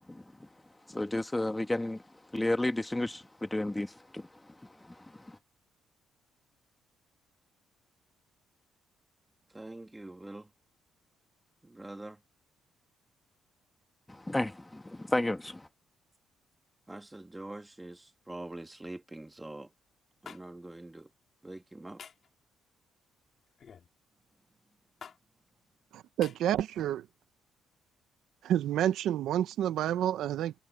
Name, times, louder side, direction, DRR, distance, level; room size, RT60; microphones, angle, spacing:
voice 1, 0.9-2.0 2.3-5.4 14.1-15.7, left 1 dB, 10° left, 1.8 m, -33 dB
voice 2, 9.5-10.5 11.6-12.2 16.9-19.7 20.2-21.1 21.4-22.0, right 2 dB, 15° right, 2.9 m, -44 dB
sound 1, 20.2-20.4 22.0-22.3 23.6-23.9 25.0-25.2 26.2-26.4, left 7 dB, 50° left, 2.4 m, -47 dB
voice 3, 25.9-27.0 28.4-30.5, right 11 dB, 75° right, 1.0 m, -29 dB
cardioid pair, 85°, 0 cm